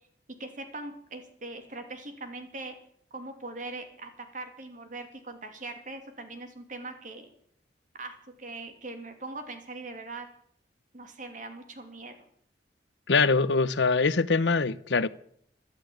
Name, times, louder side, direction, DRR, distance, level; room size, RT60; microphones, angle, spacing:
voice 1, 0.4-2.7 3.1-7.3 8.0-10.3 10.9-12.2, right 2 dB, 45° right, 2.7 m, -41 dB
voice 2, 13.1-15.1, left 4 dB, 85° left, 0.8 m, -23 dB
13.0 x 12.5 x 8.6 m
head